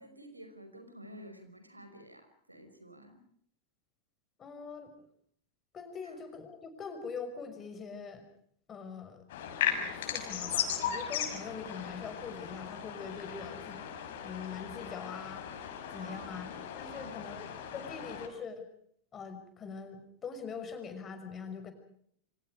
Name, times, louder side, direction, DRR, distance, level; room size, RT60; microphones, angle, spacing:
voice 1, 0.0-3.2 16.0-16.4 16.9-17.2, equal, 85° right, 8 dB, 5.5 m, -51 dB
voice 2, 4.4-4.9 5.7-8.2 8.7-9.3 9.7-13.8 14.2-15.5 15.9-16.5 16.8-17.5 17.7-18.7 19.1-21.7, left 5 dB, 25° left, 8 dB, 5.9 m, -43 dB
sound 1, 9.3-18.3, left 9 dB, 55° left, 5.8 m, -37 dB
28.5 x 26.5 x 4.9 m, 0.65 s
figure-of-eight pair, 90°, 0 cm